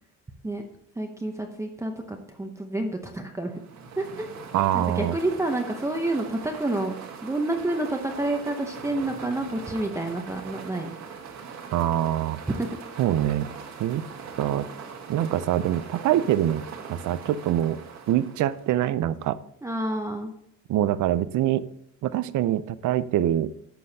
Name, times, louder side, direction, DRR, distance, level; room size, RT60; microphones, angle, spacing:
voice 1, 1.0-3.5 4.0-4.3 4.7-6.9 7.2-10.9 12.5-12.7 19.6-20.3, right 2 dB, 10° right, 3 dB, 0.7 m, -29 dB
sound 1, 3.5-19.0, right 6 dB, 70° right, 1.5 m, -41 dB
voice 2, 4.5-5.2 11.7-12.4 13.0-13.5 13.8-14.1 14.4-14.7 15.1-17.8 18.1-19.4 20.7-21.7 22.0-23.5, right 12 dB, 85° right, 15 dB, 0.6 m, -24 dB
11.5 x 7.7 x 2.8 m, 0.74 s
cardioid pair, 145°, 29 cm